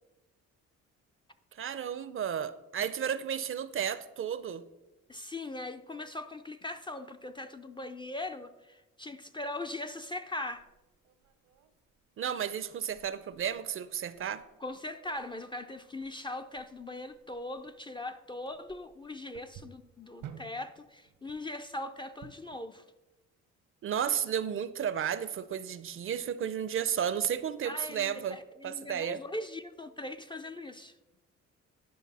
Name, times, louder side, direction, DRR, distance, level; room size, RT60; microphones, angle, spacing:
voice 1, 1.6-4.6 12.2-14.4 23.8-29.2, right 8 dB, 45° right, 0.5 m, -33 dB
voice 2, 5.1-10.6 14.6-22.9 27.6-30.9, left 2 dB, 15° left, 0.3 m, -40 dB
sound 1, 10.5-22.7, right 9 dB, 80° right, 0.9 m, -55 dB
10.5 x 5.4 x 4.1 m
cardioid pair, 90°, 30 cm